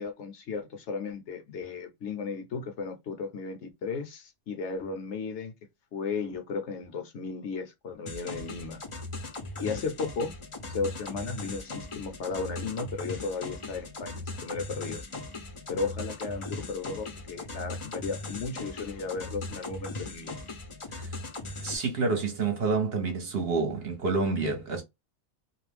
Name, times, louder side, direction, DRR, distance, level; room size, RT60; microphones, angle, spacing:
voice 1, 0.0-5.5 5.9-8.8 9.6-10.3 10.7-15.0 15.7-20.4, left 4 dB, 65° left, 0.9 m, -35 dB
sound 1, 8.1-21.8, left 2 dB, 35° left, 0.5 m, -39 dB
voice 2, 21.6-24.8, right 4 dB, 55° right, 0.9 m, -28 dB
2.5 x 2.1 x 3.2 m
omnidirectional pair, 1.4 m